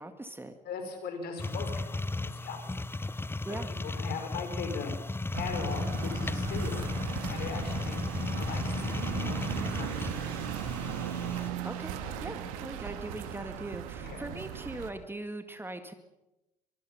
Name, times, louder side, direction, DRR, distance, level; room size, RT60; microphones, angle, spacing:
voice 1, 0.0-0.5 3.4-3.7 11.6-11.9 12.2-15.9, right 2 dB, 10° right, 8 dB, 2.0 m, -40 dB
voice 2, 0.6-2.8 3.5-4.9 5.4-6.9 7.3-8.0 8.3-10.4 12.0-12.2 14.0-14.3, left 5 dB, 55° left, 5 dB, 5.5 m, -40 dB
sound 1, 1.4-11.5, left 2 dB, 10° left, 0.8 m, -35 dB
sound 2, 5.3-14.9, right 10 dB, 70° right, 1.9 m, -37 dB
24.0 x 22.5 x 5.8 m, 0.96 s
figure-of-eight pair, 50°, 19 cm